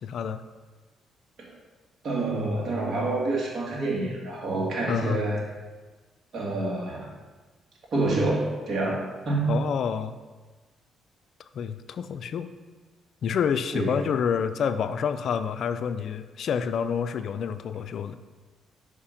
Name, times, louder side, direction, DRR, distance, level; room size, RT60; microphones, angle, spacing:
voice 1, 0.0-0.4 4.9-5.2 9.5-10.2 11.5-12.5 13.2-18.2, left 7 dB, 65° left, 11 dB, 0.3 m, -28 dB
voice 2, 2.0-5.4 6.3-7.1 7.9-9.6 13.7-14.0, right 2 dB, 55° right, -3 dB, 1.9 m, -27 dB
5.0 x 4.9 x 5.7 m, 1.3 s
cardioid pair, 90°, 0 cm